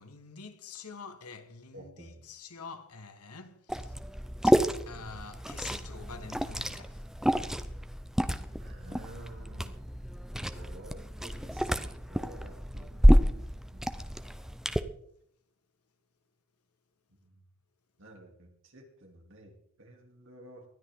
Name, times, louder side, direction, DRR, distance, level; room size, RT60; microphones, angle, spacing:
voice 1, 0.0-4.0 4.4-7.0, left 5 dB, 90° left, 1.6 m, -46 dB
voice 2, 1.7-2.2 8.6-9.8 10.4-11.7 12.1-13.3 13.7-13.8 18.0-20.6, right 1 dB, 60° right, 3.2 m, -51 dB
Liquid, 3.7-14.8, equal, ahead, 0.6 m, -29 dB
20.0 x 13.0 x 3.8 m
head